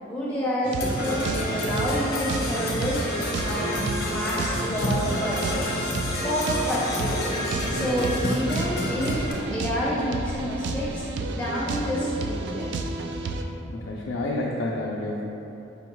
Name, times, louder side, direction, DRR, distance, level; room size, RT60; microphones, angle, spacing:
voice 1, 0.0-3.1 3.4-5.7 6.2-7.2 7.7-12.7, equal, 10° left, -8 dB, 0.6 m, -29 dB
sound 1, 0.6-13.4, right 3 dB, 60° right, 0.3 m, -31 dB
Percussion / Brass instrument, 0.8-9.3, left 1 dB, 55° left, 0.7 m, -29 dB
voice 2, 13.7-15.2, left 2 dB, 75° left, -3 dB, 0.4 m, -29 dB
5.1 x 2.3 x 4.5 m, 3.0 s
head